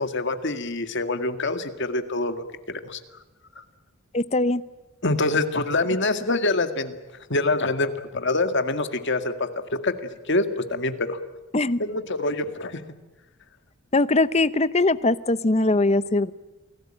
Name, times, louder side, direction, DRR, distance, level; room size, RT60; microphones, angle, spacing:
voice 1, 0.0-3.0 3.6-3.7 5.0-7.0 7.3-9.9 10.3-11.2 11.8-12.8, left 2 dB, 55° left, 8 dB, 2.0 m, -25 dB
voice 2, 4.1-4.6 11.5-11.8 13.9-16.3, left 2 dB, 30° left, 14 dB, 0.8 m, -21 dB
28.5 x 19.0 x 8.9 m, 1.1 s
head